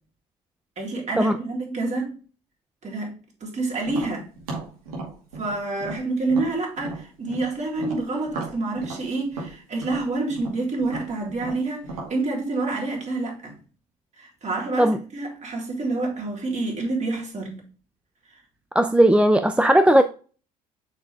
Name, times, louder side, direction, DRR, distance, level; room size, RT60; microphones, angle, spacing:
voice 1, 0.8-2.2 2.8-4.3 5.4-13.6 14.2-17.7 18.3-18.4, right 3 dB, 40° right, 3.4 m, -28 dB
Tap, 3.8-7.5 7.8-12.2, right 3 dB, 85° right, 2.4 m, -35 dB
voice 2, 18.7-20.0, right 1 dB, 5° right, 0.5 m, -17 dB
6.5 x 4.7 x 3.5 m
hypercardioid pair, 60°, 19 cm